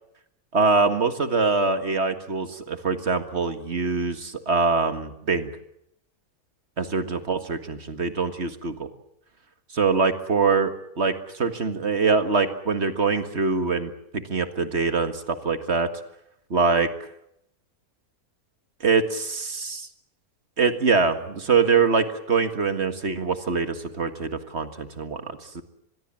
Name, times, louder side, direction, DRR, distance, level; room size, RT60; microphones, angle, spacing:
voice 1, 0.5-5.5 6.8-8.9 9.7-15.9 16.5-16.9 18.8-19.9 20.6-25.6, right 4 dB, 45° right, 9 dB, 2.0 m, -24 dB
25.0 x 21.5 x 7.6 m, 0.76 s
omnidirectional pair, 1.6 m